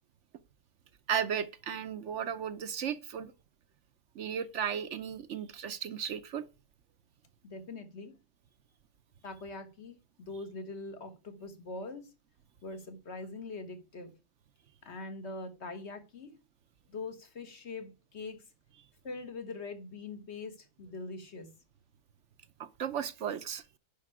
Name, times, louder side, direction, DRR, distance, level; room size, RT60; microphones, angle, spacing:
voice 1, 1.1-3.3 4.2-6.4 22.6-23.6, right 8 dB, 65° right, 0.9 m, -35 dB
voice 2, 7.4-8.2 9.2-12.1 12.6-14.1 14.8-16.3 16.9-18.4 19.0-21.5, left 3 dB, 55° left, 1.6 m, -43 dB
10.0 x 5.5 x 4.8 m
omnidirectional pair, 1.4 m